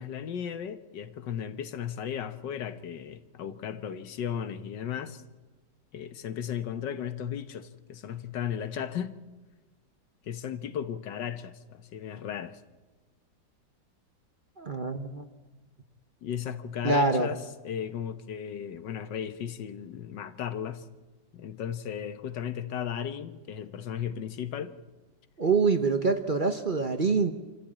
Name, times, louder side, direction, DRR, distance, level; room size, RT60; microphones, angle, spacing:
voice 1, 0.0-5.2 5.9-9.2 10.2-12.6 16.2-17.4 17.6-20.9 21.3-24.8, left 8 dB, 85° left, 1.7 m, -35 dB
voice 2, 14.6-15.3 16.8-17.3 25.4-27.3, right 4 dB, 35° right, 1.0 m, -25 dB
26.0 x 15.0 x 8.7 m
omnidirectional pair, 1.9 m